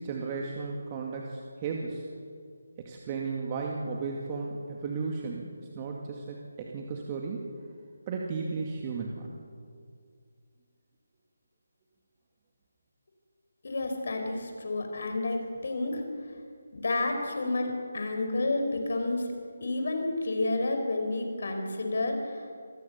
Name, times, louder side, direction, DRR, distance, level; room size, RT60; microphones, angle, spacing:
voice 1, 0.0-2.0 2.8-7.5 8.1-9.3, right 4 dB, 25° right, 0 dB, 2.2 m, -35 dB
voice 2, 13.6-16.0 16.7-19.3 19.6-22.5, left 2 dB, 60° left, 4 dB, 5.3 m, -30 dB
27.0 x 19.5 x 7.0 m, 2.2 s
figure-of-eight pair, 155°, 0 cm